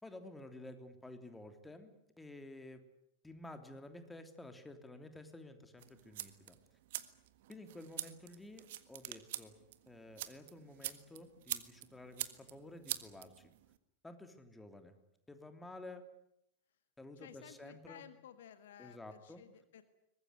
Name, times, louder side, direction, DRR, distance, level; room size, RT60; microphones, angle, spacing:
voice 1, 0.0-2.8 3.2-6.6 7.5-9.6 9.9-13.5 14.0-14.9 15.3-16.0 17.0-18.0 18.8-19.4, left 2 dB, 10° left, 8 dB, 3.1 m, -52 dB
sound 1, 5.8-13.8, right 14 dB, 55° right, 1.6 m, -45 dB
voice 2, 17.2-19.8, left 10 dB, 60° left, 11 dB, 1.7 m, -56 dB
23.5 x 20.5 x 9.5 m, 0.80 s
figure-of-eight pair, 90°, 0 cm